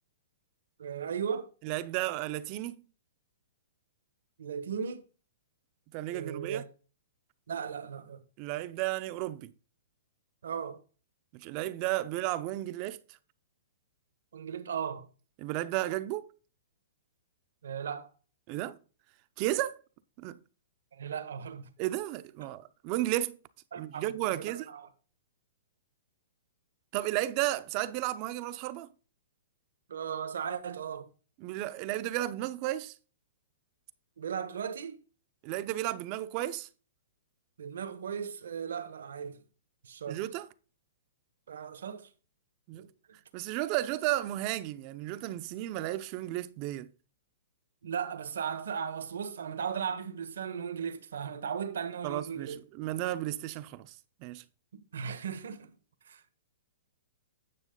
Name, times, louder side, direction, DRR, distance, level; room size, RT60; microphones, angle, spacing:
voice 1, 0.8-1.5 4.4-5.0 6.1-6.6 7.5-8.2 10.4-10.8 14.3-15.1 17.6-18.1 20.9-21.7 23.7-24.9 29.9-31.1 34.2-35.0 37.6-39.4 39.8-40.2 41.5-42.1 42.7-42.9 47.8-52.6 54.7-55.7 56.0-56.4, right 7 dB, 80° right, 1.3 m, -37 dB
voice 2, 1.6-2.8 5.9-6.6 8.4-9.5 11.3-13.0 15.4-16.3 18.5-18.8 19.4-19.8 20.2-20.4 21.8-23.4 23.8-24.7 26.9-28.9 31.4-32.9 35.4-36.7 40.1-40.5 42.7-42.9 43.3-46.9 52.0-53.9 54.2-54.4, right 15 dB, 35° right, 0.7 m, -33 dB
10.0 x 6.2 x 3.9 m
hypercardioid pair, 145°, 0 cm